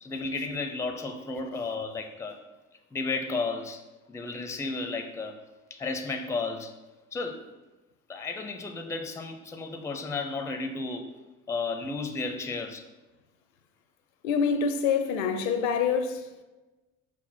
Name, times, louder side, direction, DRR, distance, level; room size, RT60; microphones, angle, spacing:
voice 1, 0.0-2.4 2.9-5.4 5.7-6.7 7.1-7.5 8.1-11.1 11.5-12.8, left 3 dB, 5° left, 0.4 m, -33 dB
voice 2, 14.2-16.3, left 6 dB, 70° left, 0.6 m, -26 dB
5.8 x 2.0 x 4.2 m
hypercardioid pair, 60°, 40 cm